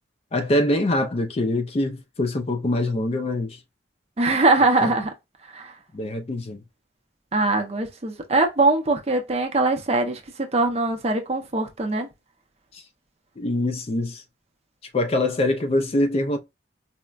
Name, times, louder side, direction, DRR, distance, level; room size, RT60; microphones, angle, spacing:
voice 1, 0.3-3.6 4.8-4.9 5.9-6.6 12.7-12.8 13.4-14.2 14.9-16.4, left 1 dB, 35° left, 0.4 m, -24 dB
voice 2, 4.2-5.1 5.5-5.7 7.3-10.2 10.5-12.1, right 2 dB, 35° right, 0.6 m, -22 dB
4.2 x 2.1 x 2.3 m
head